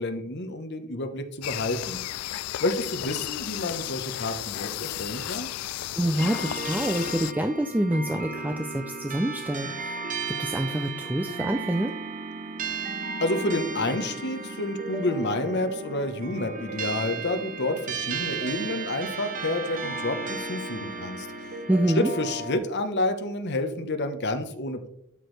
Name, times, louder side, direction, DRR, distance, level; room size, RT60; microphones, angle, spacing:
voice 1, 0.0-2.0 2.6-5.5 13.2-21.3 21.9-24.9, left 2 dB, 50° left, 7 dB, 1.1 m, -29 dB
sound 1, 1.4-7.3, left 14 dB, 75° left, 0.3 m, -33 dB
voice 2, 5.9-10.0 10.4-11.9 21.7-22.1, right 1 dB, 10° right, 6 dB, 0.4 m, -26 dB
sound 2, 6.2-22.6, right 4 dB, 40° right, 1.2 m, -34 dB
12.0 x 6.3 x 3.3 m, 0.71 s
head